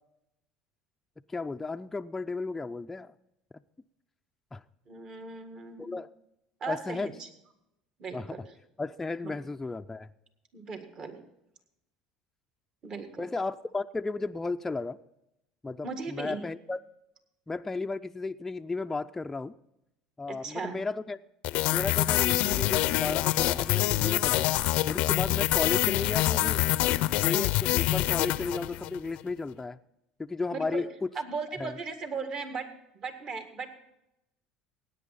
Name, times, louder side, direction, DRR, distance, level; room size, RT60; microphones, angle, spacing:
voice 1, 1.3-3.1 4.5-4.6 5.8-6.1 6.7-7.1 8.1-8.4 8.8-10.1 13.2-15.0 15.6-16.8 17.5-19.5 20.2-21.2 21.7-24.6 24.8-26.6 27.2-29.8 30.2-31.1 31.6-31.8, left 3 dB, 10° left, 6 dB, 0.4 m, -34 dB
voice 2, 4.9-6.0 6.6-7.3 8.0-8.5 9.2-9.4 10.5-11.2 12.8-13.3 15.8-16.4 20.3-20.7 30.5-30.8 31.1-33.7, right 4 dB, 45° right, 7 dB, 1.8 m, -37 dB
sound 1, 21.4-29.0, left 16 dB, 65° left, 0.5 m, -26 dB
17.0 x 9.2 x 4.1 m, 0.85 s
supercardioid pair, 100°, 2 cm